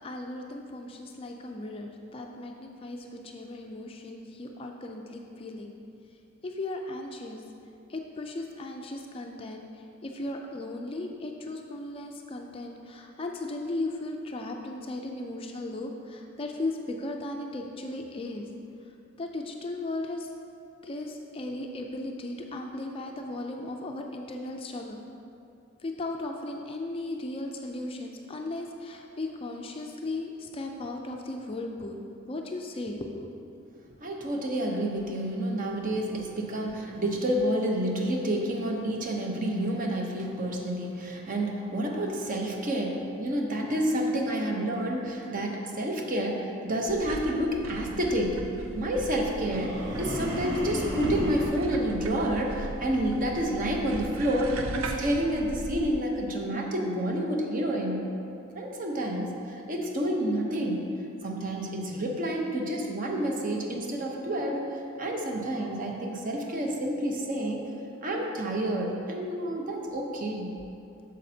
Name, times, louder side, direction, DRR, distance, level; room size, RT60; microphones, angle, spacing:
voice 1, 0.0-5.8 6.4-7.4 7.9-9.6 10.0-18.4 19.2-20.3 20.8-25.0 25.8-33.3, left 2 dB, 25° left, 3 dB, 0.3 m, -36 dB
voice 2, 34.0-48.4 48.7-58.1 58.5-60.9 61.2-67.6 68.0-70.6, right 1 dB, 40° right, 1 dB, 0.7 m, -29 dB
sound 1, 46.9-56.0, right 2 dB, 75° right, 0.5 m, -38 dB
sound 2, 49.5-51.6, equal, 55° right, 1.2 m, -32 dB
8.4 x 6.4 x 2.7 m, 2.6 s
head